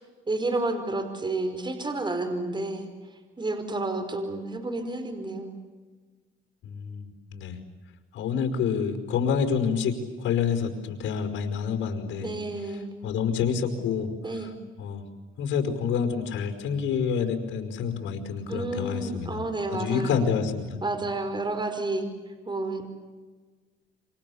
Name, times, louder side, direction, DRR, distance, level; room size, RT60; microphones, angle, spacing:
voice 1, 0.3-2.9 3.4-5.5 12.2-12.9 14.2-14.5 18.5-20.3 20.8-22.1 22.4-22.9, right 2 dB, 25° right, 8 dB, 4.8 m, -30 dB
voice 2, 6.6-7.6 8.1-12.3 13.0-14.1 14.8-15.0 15.4-19.4 19.7-20.8, left 6 dB, 80° left, 6 dB, 5.2 m, -28 dB
28.5 x 26.5 x 7.2 m, 1.4 s
cardioid pair, 90°, 20 cm